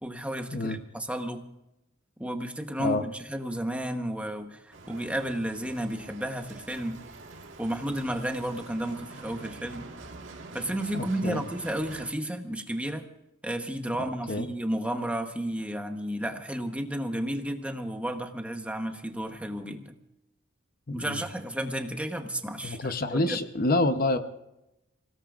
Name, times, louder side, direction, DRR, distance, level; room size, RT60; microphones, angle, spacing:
voice 1, 0.0-1.4 2.2-7.0 7.6-9.9 10.5-13.1 13.4-19.9 20.9-23.4, right 1 dB, 5° right, 5 dB, 1.1 m, -32 dB
Bicycle, 4.7-12.1, right 3 dB, 75° right, 1.9 m, -45 dB
voice 2, 10.9-11.4 14.3-14.5 20.9-21.2 22.6-24.2, left 2 dB, 50° left, 8 dB, 0.9 m, -27 dB
28.0 x 17.5 x 2.5 m, 0.88 s
head